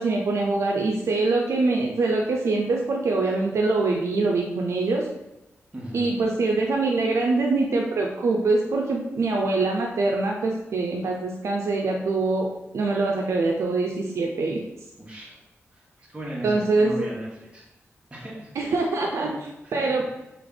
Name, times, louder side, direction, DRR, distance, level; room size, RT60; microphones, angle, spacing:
voice 1, 0.0-5.1 5.9-12.5 12.7-14.6 16.4-17.1 18.6-19.3 19.7-20.0, right 3 dB, 80° right, 0 dB, 0.5 m, -24 dB
voice 2, 5.7-6.1 15.0-15.4 15.7-17.7 18.1-18.5 18.9-19.8, right 1 dB, 20° right, -5 dB, 1.2 m, -37 dB
3.4 x 3.3 x 3.9 m, 0.95 s
wide cardioid pair, 90°, 5 cm